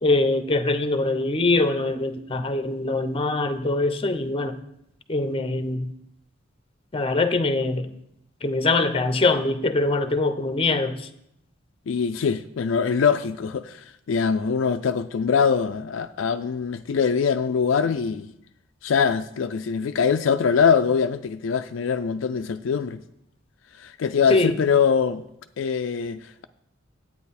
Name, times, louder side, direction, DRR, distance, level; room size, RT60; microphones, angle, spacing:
voice 1, 0.0-4.6 5.1-5.9 6.9-7.9 8.4-11.1 24.3-24.5, left 2 dB, 30° left, 0.7 m, -23 dB
voice 2, 11.9-18.3 18.8-23.0 23.8-25.2 25.6-26.4, left 6 dB, 70° left, 0.4 m, -23 dB
10.5 x 8.6 x 4.2 m
head